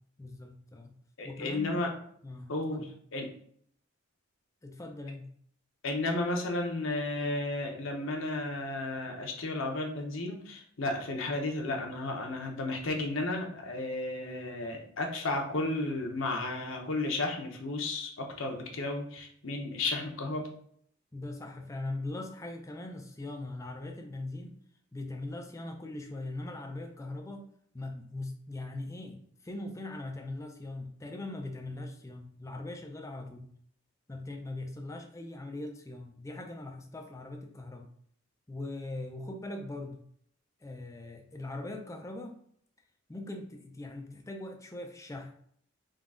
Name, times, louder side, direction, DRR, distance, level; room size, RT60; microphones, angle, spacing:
voice 1, 0.2-0.9 1.2-1.9 2.2-2.9 4.6-5.3 21.1-24.6 24.9-33.5 34.1-37.9 38.5-40.0 40.6-42.4 43.1-45.3, left 2 dB, 15° left, 3 dB, 0.4 m, -41 dB
voice 2, 1.2-1.9 2.5-3.3 5.8-20.5, left 2 dB, 70° left, 2 dB, 0.7 m, -33 dB
3.7 x 2.3 x 3.6 m, 0.63 s
head